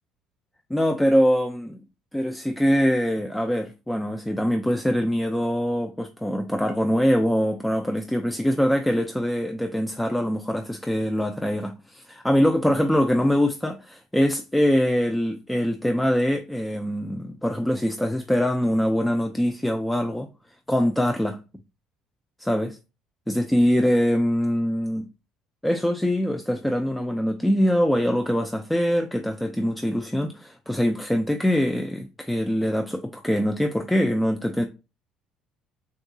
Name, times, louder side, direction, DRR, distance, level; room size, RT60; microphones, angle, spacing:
voice 1, 0.7-1.8 2.1-20.3 20.7-21.4 22.4-22.8 23.3-25.1 25.6-34.7, equal, 5° left, 0.3 m, -23 dB
3.7 x 2.6 x 2.3 m
cardioid pair, 105°, 0 cm